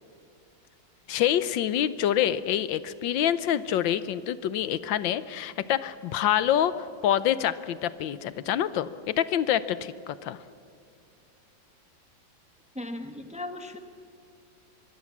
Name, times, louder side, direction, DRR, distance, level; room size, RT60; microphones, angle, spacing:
voice 1, 1.1-6.7 7.0-10.4, left 11 dB, 80° left, 15 dB, 1.4 m, -26 dB
voice 2, 12.7-13.8, left 1 dB, 5° right, 7 dB, 1.1 m, -37 dB
24.5 x 21.5 x 7.3 m, 2.4 s
omnidirectional pair, 2.1 m